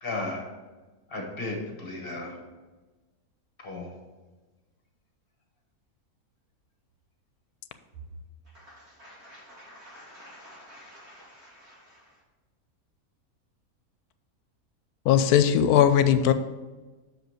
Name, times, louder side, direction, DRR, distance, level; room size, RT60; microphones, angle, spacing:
voice 1, 0.0-0.4 1.1-2.4 3.6-3.9, left 2 dB, 40° left, 1 dB, 1.5 m, -34 dB
voice 2, 8.5-12.1, equal, 80° right, -6 dB, 3.1 m, -50 dB
voice 3, 15.1-16.3, left 9 dB, 85° left, 11 dB, 1.1 m, -19 dB
6.4 x 5.1 x 6.3 m, 1.2 s
omnidirectional pair, 1.6 m